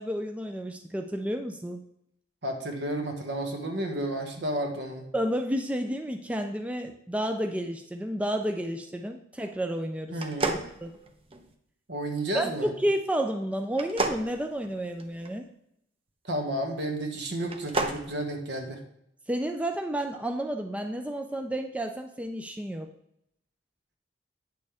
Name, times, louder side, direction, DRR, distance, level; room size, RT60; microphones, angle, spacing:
voice 1, 0.0-1.8 5.1-10.2 10.5-10.9 12.3-15.5 19.3-22.9, right 1 dB, 5° right, 5 dB, 0.5 m, -31 dB
voice 2, 2.4-5.0 10.1-10.6 11.9-12.7 16.2-18.8, right 1 dB, 65° right, 3 dB, 1.6 m, -32 dB
sound 1, 10.1-11.5 13.7-15.3 17.4-18.0, right 2 dB, 30° right, 0.9 m, -31 dB
9.5 x 6.7 x 3.5 m, 0.76 s
head